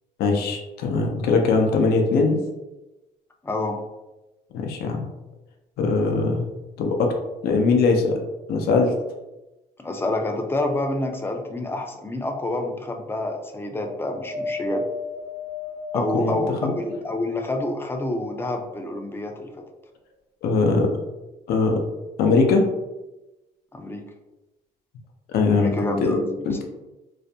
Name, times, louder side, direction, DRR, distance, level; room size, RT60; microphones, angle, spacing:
voice 1, 0.2-2.4 4.5-5.1 5.8-6.5 6.8-7.1 7.4-8.1 8.5-8.9 15.9-16.7 20.4-20.9 21.5-21.8 22.2-22.7 25.3-25.7 26.0-26.2 26.5-26.6, left 4 dB, 70° left, 3 dB, 0.5 m, -21 dB
voice 2, 3.4-3.8 9.8-14.8 15.9-19.5 23.7-24.0 25.6-26.6, left 2 dB, 15° left, 3 dB, 0.3 m, -28 dB
Wind, 13.8-17.3 17.9-18.9 19.7-19.8, left 2 dB, 70° right, 0.8 m, -34 dB
2.4 x 2.1 x 2.7 m, 1.0 s
cardioid pair, 110°, 17 cm